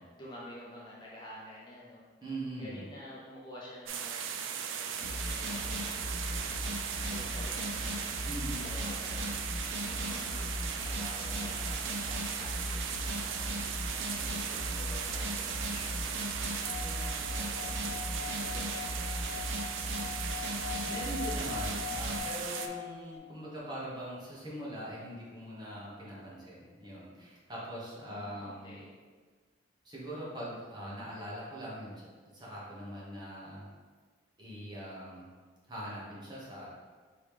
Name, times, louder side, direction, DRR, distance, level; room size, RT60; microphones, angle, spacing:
voice 1, 0.0-2.0 2.5-8.1 8.6-9.4 9.8-13.4 13.8-19.4 22.4-22.7 28.0-28.9, left 1 dB, 25° left, -7 dB, 0.7 m, -50 dB
voice 2, 2.2-2.8 8.2-8.6 20.8-28.8 29.8-32.1 32.3-33.7 34.4-35.3 35.7-36.7, right 1 dB, 20° right, -7 dB, 1.1 m, -42 dB
sound 1, 3.9-22.7, right 7 dB, 85° right, 0.4 m, -38 dB
sound 2, 5.0-22.2, equal, 70° right, 0.8 m, -38 dB
Singing / Glass, 16.6-23.2, left 8 dB, 60° left, 0.5 m, -43 dB
4.7 x 3.1 x 3.5 m, 1.5 s
head